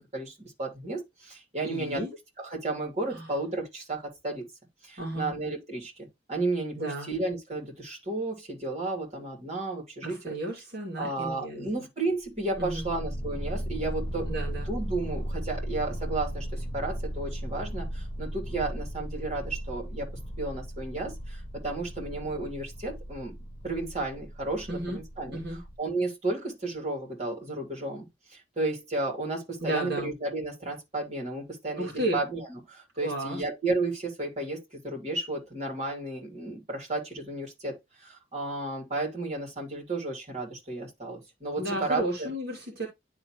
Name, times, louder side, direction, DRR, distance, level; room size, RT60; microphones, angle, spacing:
voice 1, 0.0-2.0 2.4-4.5 4.8-10.3 11.0-14.3 14.7-20.1 20.4-23.4 23.6-42.3, right 2 dB, 35° right, 2.8 m, -33 dB
voice 2, 1.6-2.1 3.1-3.3 5.0-5.3 6.7-7.1 10.0-11.8 12.6-12.9 14.3-14.7 24.7-25.0 25.3-25.6 29.6-30.1 31.8-32.1 33.0-33.4 41.6-42.9, right 1 dB, 50° right, 2.3 m, -33 dB
sound 1, 12.3-25.8, equal, 25° left, 0.6 m, -36 dB
11.0 x 3.6 x 3.0 m
head